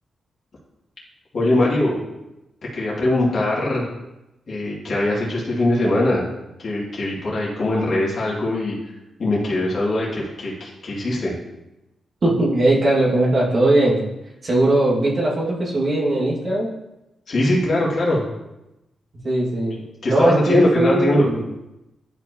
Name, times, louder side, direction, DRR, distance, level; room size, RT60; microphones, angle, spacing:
voice 1, 1.3-2.1 2.7-3.8 4.5-6.3 6.6-11.3 17.3-18.2 20.0-21.3, left 1 dB, 60° left, -5 dB, 2.1 m, -21 dB
voice 2, 12.2-14.1 14.4-16.7 19.2-19.7 20.1-21.4, right 1 dB, 55° right, -5 dB, 1.7 m, -19 dB
10.5 x 4.6 x 2.8 m, 0.94 s
supercardioid pair, 50°, 0 cm